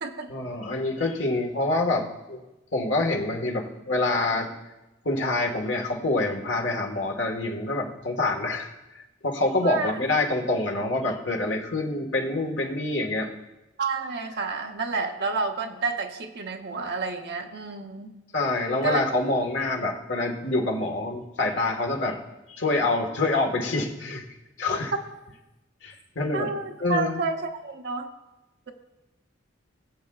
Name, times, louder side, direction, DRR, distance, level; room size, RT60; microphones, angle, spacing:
voice 1, 0.3-2.4 2.7-4.5 5.0-8.7 9.2-13.3 18.3-22.2 22.5-24.2 24.6-24.9 25.8-26.5 26.8-27.2, left 2 dB, 70° left, 2 dB, 1.5 m, -26 dB
voice 2, 13.8-18.1 18.8-19.0 24.9-25.0 26.3-28.1, right 4 dB, 60° right, 3 dB, 0.7 m, -30 dB
21.0 x 7.6 x 2.4 m, 1.0 s
head